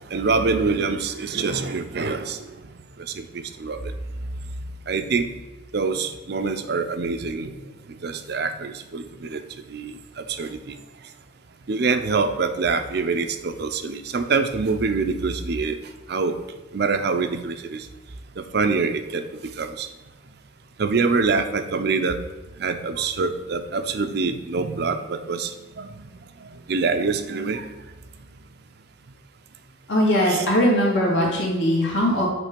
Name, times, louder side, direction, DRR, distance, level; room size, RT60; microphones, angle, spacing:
voice 1, 0.1-2.4 3.2-3.8 4.9-5.3 5.7-7.5 8.0-9.4 9.7-10.7 11.7-15.8 16.1-16.4 16.7-17.9 18.4-19.9 20.8-22.2 22.6-25.9 26.7-27.7 30.3-30.5, right 4 dB, 55° right, 9 dB, 0.5 m, -25 dB
voice 2, 29.9-32.3, equal, 70° left, -4 dB, 2.3 m, -20 dB
8.3 x 3.3 x 5.1 m, 1.1 s
head